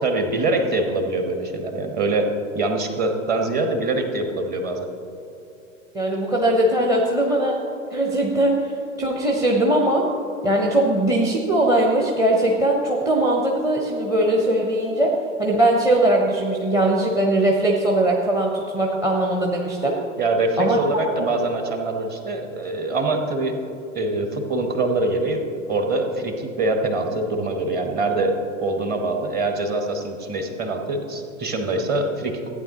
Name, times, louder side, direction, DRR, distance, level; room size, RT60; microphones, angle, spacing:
voice 1, 0.0-4.9 20.2-23.6 23.9-32.5, right 2 dB, 25° right, 5 dB, 1.1 m, -24 dB
voice 2, 5.9-7.6 7.9-8.7 9.0-10.1 10.4-20.0 20.6-20.8, right 1 dB, 10° right, -1 dB, 0.7 m, -20 dB
14.5 x 8.9 x 2.9 m, 3.0 s
figure-of-eight pair, 90°, 40 cm